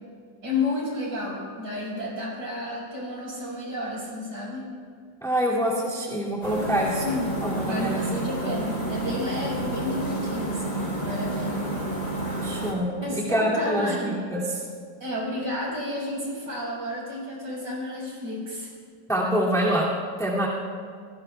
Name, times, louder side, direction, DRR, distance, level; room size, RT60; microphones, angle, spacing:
voice 1, 0.4-4.7 7.0-7.3 7.5-11.7 13.0-14.2 15.0-18.7, left 2 dB, 65° right, -5 dB, 6.4 m, -31 dB
voice 2, 5.2-7.1 7.4-8.1 12.4-14.6 19.1-20.5, equal, ahead, -5 dB, 2.4 m, -26 dB
sound 1, 6.4-12.7, right 1 dB, 40° left, 3.5 m, -30 dB
28.0 x 19.0 x 2.4 m, 2.1 s
omnidirectional pair, 2.0 m